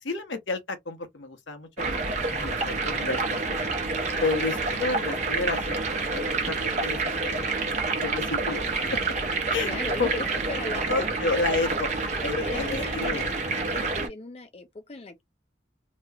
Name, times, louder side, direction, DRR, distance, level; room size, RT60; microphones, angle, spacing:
voice 1, 0.0-1.9 2.2-3.7 4.2-5.8 6.1-7.5 8.0-8.6 8.9-9.1 9.5-10.1 10.9-13.2, left 3 dB, 85° left, 1.0 m, -31 dB
sound 1, 1.8-14.1, right 3 dB, 40° right, 0.8 m, -28 dB
voice 2, 9.6-11.1 12.4-13.3 13.7-15.2, left 3 dB, 35° left, 0.4 m, -36 dB
3.0 x 2.9 x 2.2 m
head